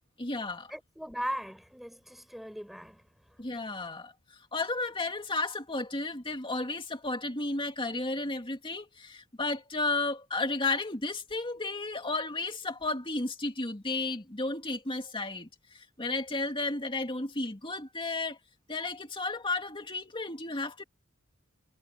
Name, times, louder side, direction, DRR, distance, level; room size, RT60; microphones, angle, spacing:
voice 1, 0.2-0.7 3.4-4.1 4.5-18.4 18.7-20.8, left 3 dB, 25° left, 2.4 m, -33 dB
voice 2, 0.7-3.1, equal, ahead, 5.1 m, -38 dB
head